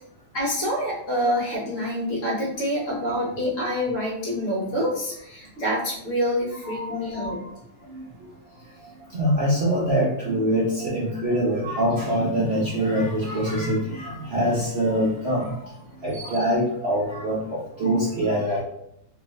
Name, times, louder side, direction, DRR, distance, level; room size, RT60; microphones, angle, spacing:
voice 1, 0.3-7.4, equal, 50° left, -4 dB, 1.2 m, -26 dB
voice 2, 6.7-7.3 7.9-8.0 9.1-15.5 16.0-18.6, equal, 50° right, -7 dB, 0.8 m, -24 dB
3.0 x 2.5 x 3.1 m, 0.75 s
omnidirectional pair, 1.8 m